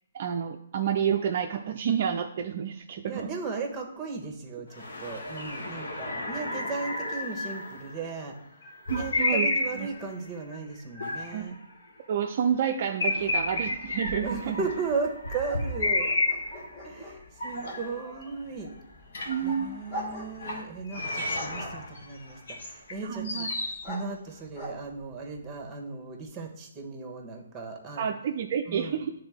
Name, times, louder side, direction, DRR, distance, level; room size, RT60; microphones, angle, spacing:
voice 1, 0.1-3.3 8.9-9.5 9.7-9.9 11.3-11.4 12.1-14.6 19.3-19.7 23.0-23.5 28.0-29.1, right 8 dB, 45° right, 4 dB, 0.4 m, -29 dB
voice 2, 3.1-8.4 8.9-11.6 14.2-16.1 16.8-18.7 19.4-28.1 28.7-29.0, right 4 dB, 15° right, 2 dB, 1.2 m, -36 dB
sound 1, 4.7-8.1 8.6-10.1 10.5-11.4 11.7-11.8 12.3-12.4 12.7-16.8 17.4-18.3 18.7-18.8 19.1-20.0 20.4-20.6 20.9-22.9 23.2-23.9, left 2 dB, 60° left, 1.5 m, -32 dB
sound 2, 13.1-25.7, equal, 30° left, 2.0 m, -45 dB
9.5 x 3.6 x 3.5 m, 0.77 s
figure-of-eight pair, 135°, 0 cm